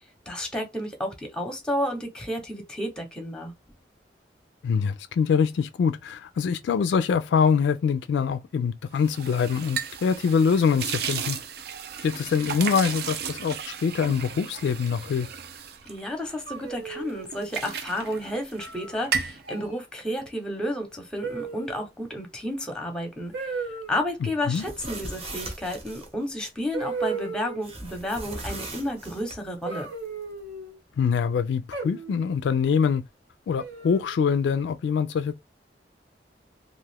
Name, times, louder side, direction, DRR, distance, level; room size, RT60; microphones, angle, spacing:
voice 1, 0.3-3.5 15.9-23.6 23.9-29.9, left 1 dB, 5° left, 0.7 m, -31 dB
voice 2, 4.6-11.4 12.0-15.3 24.5-24.6 31.0-33.0 33.5-35.4, left 6 dB, 75° left, 0.3 m, -24 dB
sound 1, 8.9-16.7 17.1-18.8 19.0-19.4, right 7 dB, 60° right, 0.4 m, -34 dB
sound 2, 16.5-17.3 18.6-19.0 19.4-19.8 21.2-21.8 23.3-23.9 25.8-25.9 26.7-27.7 29.6-30.7 31.7-32.3 33.6-34.2, right 4 dB, 85° right, 1.1 m, -35 dB
sound 3, 24.4-26.1 27.6-29.4, right 2 dB, 35° right, 0.8 m, -38 dB
2.4 x 2.3 x 3.3 m
head